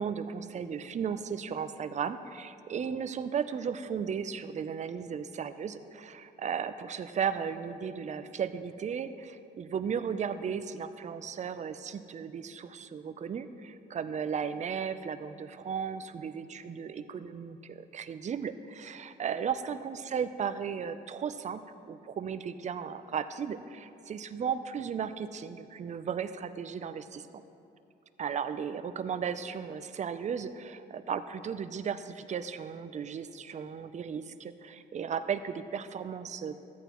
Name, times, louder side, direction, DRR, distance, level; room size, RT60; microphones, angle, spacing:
voice 1, 0.0-21.6 21.9-27.3 28.2-36.6, right 7 dB, 35° right, 10 dB, 0.5 m, -35 dB
13.5 x 8.9 x 3.0 m, 2.8 s
cardioid pair, 90°, 20 cm